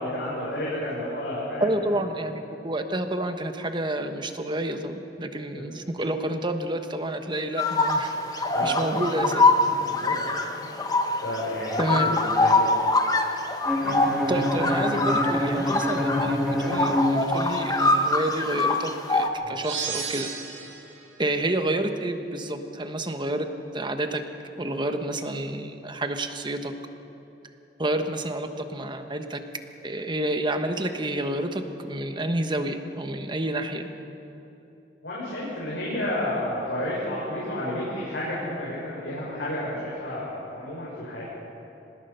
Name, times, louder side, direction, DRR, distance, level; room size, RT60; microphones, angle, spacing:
voice 1, 0.0-1.7 5.5-5.7 8.5-9.3 9.6-10.2 10.6-12.7 19.4-19.6 35.0-41.2, left 1 dB, 85° left, -7 dB, 6.0 m, -31 dB
voice 2, 1.6-9.5 11.8-12.2 14.3-20.3 21.2-24.2 24.6-26.7 27.8-29.4 29.8-33.9, right 1 dB, 25° right, 7 dB, 1.2 m, -29 dB
sound 1, 7.6-19.3, left 2 dB, 20° left, 1.3 m, -24 dB
Bowed string instrument, 13.7-17.8, left 1 dB, ahead, 2.6 m, -26 dB
sound 2, 19.6-21.0, right 6 dB, 75° right, 3.4 m, -33 dB
24.5 x 19.5 x 5.7 m, 3.0 s
head